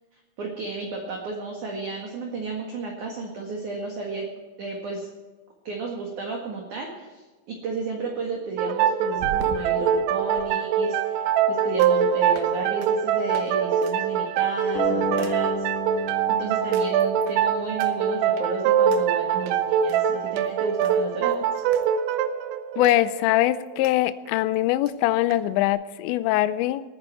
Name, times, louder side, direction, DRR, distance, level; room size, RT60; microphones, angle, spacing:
voice 1, 0.4-4.3 4.6-5.1 5.6-15.7 16.4-21.6, right 4 dB, 55° right, 0 dB, 2.5 m, -33 dB
sound 1, 8.6-23.9, right 8 dB, 90° right, 3.5 m, -23 dB
sound 2, 9.2-10.5 11.8-12.0 12.3-12.5 12.8-12.9 13.3-13.5 13.8-14.0 14.4-14.6 15.2-15.3 16.1-16.2 16.7-17.4 17.8-17.9 18.4-18.5 18.9-19.0 19.5-20.0 20.3-20.5 20.8-21.9 22.1-22.2 22.8-23.0 23.3-23.9 24.3-24.4 24.5-24.6 24.9-25.0 25.3-25.4, right 6 dB, 70° right, 2.5 m, -40 dB
sound 3, 14.8-18.0, left 1 dB, 65° left, 4.7 m, -32 dB
voice 2, 22.8-26.8, left 15 dB, 85° left, 14 dB, 2.6 m, -22 dB
20.5 x 9.8 x 4.6 m, 1.3 s
omnidirectional pair, 5.8 m